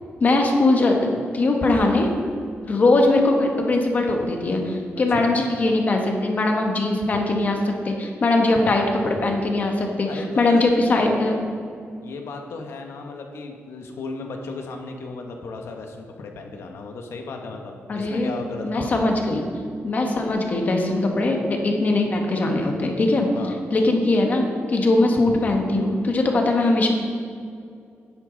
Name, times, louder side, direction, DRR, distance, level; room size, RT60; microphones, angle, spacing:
voice 1, 0.2-2.1 2.7-11.4 17.9-18.3 18.6-19.4 19.8-23.3 23.7-26.9, left 2 dB, 40° left, 2 dB, 1.2 m, -21 dB
voice 2, 10.1-10.7 12.0-19.1 23.3-23.6, left 3 dB, 75° left, 3 dB, 1.2 m, -35 dB
10.0 x 8.3 x 3.9 m, 2.3 s
wide cardioid pair, 165°, 4 cm